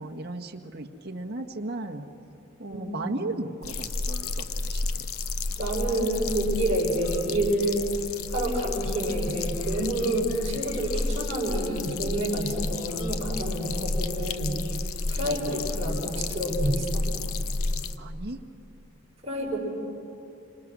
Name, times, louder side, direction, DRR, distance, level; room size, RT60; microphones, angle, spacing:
voice 1, 0.0-2.0 2.6-5.1 9.8-10.3 15.2-15.6 18.0-18.4, right 2 dB, 50° right, 2 dB, 1.6 m, -36 dB
voice 2, 2.7-3.1 5.6-7.9 8.3-14.6 15.1-17.1 19.2-19.6, right 1 dB, 30° right, -6 dB, 5.7 m, -28 dB
sound 1, 3.6-18.0, left 3 dB, 80° left, 0.9 m, -31 dB
29.0 x 26.0 x 6.3 m, 2.6 s
head